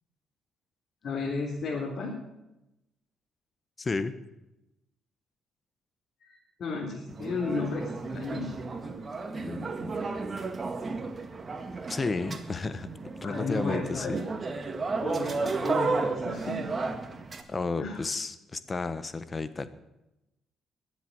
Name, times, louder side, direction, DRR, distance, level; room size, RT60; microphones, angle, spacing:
voice 1, 1.0-2.1 6.2-8.5 13.2-14.1 15.0-16.7 17.8-18.0, left 3 dB, 60° left, -2 dB, 3.6 m, -33 dB
voice 2, 3.8-4.1 9.4-10.1 11.9-12.9 13.2-14.2 17.5-19.7, left 3 dB, 30° left, 13 dB, 1.3 m, -32 dB
sound 1, 7.1-17.4, right 3 dB, 35° right, 2.0 m, -33 dB
21.0 x 8.0 x 8.0 m, 0.93 s
cardioid pair, 90°, 0 cm